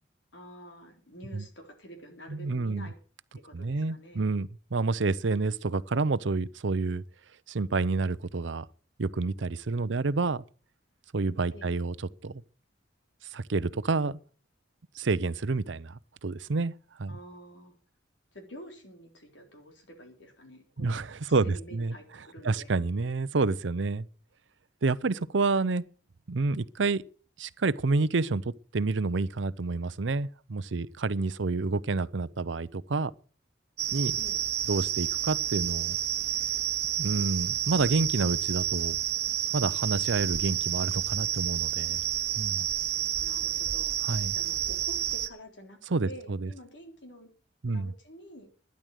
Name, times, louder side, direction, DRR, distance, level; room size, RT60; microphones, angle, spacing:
voice 1, 0.3-2.9 3.4-4.3 11.5-11.8 17.1-17.7 18.3-22.7 34.2-34.4 43.2-44.0 44.3-45.8 46.0-47.3 47.6-48.5, equal, 80° left, 3.8 m, -48 dB
voice 2, 2.3-2.9 3.5-7.0 7.5-8.7 9.0-10.4 11.1-11.9 12.2-12.4 13.3-14.2 14.9-16.7 17.0-17.2 20.8-21.9 22.4-24.1 24.8-25.8 26.3-27.0 27.4-33.1 33.9-34.2 34.7-36.0 37.0-39.0 39.5-42.0 42.4-42.7 44.1-44.3 45.9-46.5 47.6-47.9, right 3 dB, 85° right, 0.7 m, -29 dB
sound 1, 33.8-45.3, right 10 dB, 60° right, 1.1 m, -30 dB
12.5 x 10.5 x 6.4 m
head